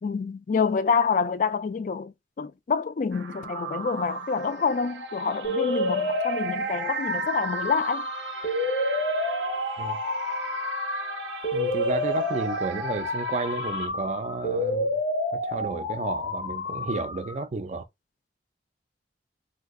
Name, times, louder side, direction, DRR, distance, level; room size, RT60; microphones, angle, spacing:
voice 1, 0.0-8.1, left 5 dB, 45° left, 0.3 m, -27 dB
sound 1, 3.1-13.9, right 4 dB, 85° right, 0.6 m, -36 dB
sound 2, 5.4-17.4, left 1 dB, 80° left, 0.7 m, -29 dB
voice 2, 11.5-15.0 15.3-17.8, right 3 dB, 40° right, 0.4 m, -32 dB
2.7 x 2.3 x 3.4 m
head